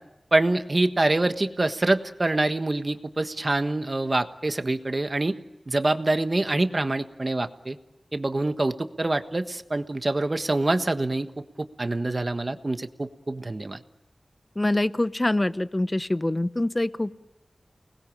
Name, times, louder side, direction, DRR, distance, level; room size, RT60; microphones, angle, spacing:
voice 1, 0.3-5.3 5.7-7.8 8.1-11.4 11.8-13.8, right 2 dB, 40° right, 8 dB, 1.4 m, -25 dB
voice 2, 14.6-17.2, left 1 dB, 25° left, 13 dB, 0.9 m, -25 dB
29.5 x 20.5 x 7.4 m, 0.93 s
wide cardioid pair, 75°, 0 cm